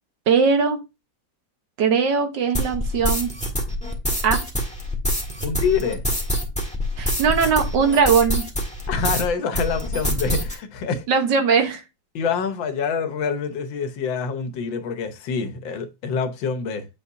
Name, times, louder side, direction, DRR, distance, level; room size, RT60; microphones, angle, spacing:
voice 1, 0.3-0.8 1.8-3.3 4.2-4.4 7.0-8.5 11.1-11.8, right 5 dB, 70° right, 1.7 m, -19 dB
sound 1, 2.5-9.3 9.5-10.5, equal, 5° left, 1.4 m, -25 dB
voice 2, 5.4-6.0 8.9-11.1 12.2-16.9, left 5 dB, 80° left, 1.7 m, -26 dB
8.0 x 5.5 x 2.6 m
omnidirectional pair, 2.0 m